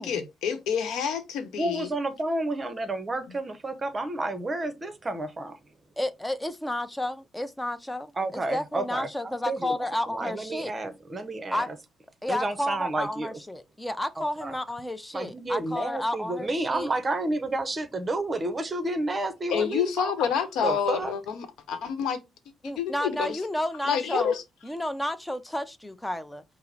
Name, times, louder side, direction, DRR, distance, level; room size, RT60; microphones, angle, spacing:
voice 1, 0.0-1.9 19.5-22.2 22.8-23.4 23.9-24.4, left 7 dB, 85° left, 0.9 m, -28 dB
voice 2, 1.6-5.6 8.2-11.8 12.3-13.3 14.2-14.6 15.1-20.2 20.6-21.1, right 2 dB, 30° right, 0.8 m, -30 dB
voice 3, 6.0-10.7 11.5-11.7 12.2-16.9 22.6-24.3 24.6-26.4, left 1 dB, 10° left, 0.6 m, -31 dB
5.3 x 2.1 x 4.0 m
cardioid pair, 90°, 0 cm